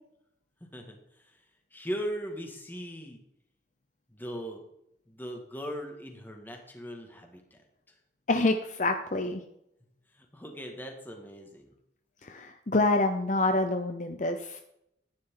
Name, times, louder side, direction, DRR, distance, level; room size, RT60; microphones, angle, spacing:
voice 1, 0.7-1.4 1.7-3.2 4.1-4.6 5.1-7.6 10.1-11.7, equal, 10° left, 3 dB, 2.0 m, -39 dB
voice 2, 8.3-9.4 12.2-14.6, left 2 dB, 40° left, 6 dB, 0.7 m, -27 dB
14.0 x 10.5 x 3.9 m, 0.79 s
head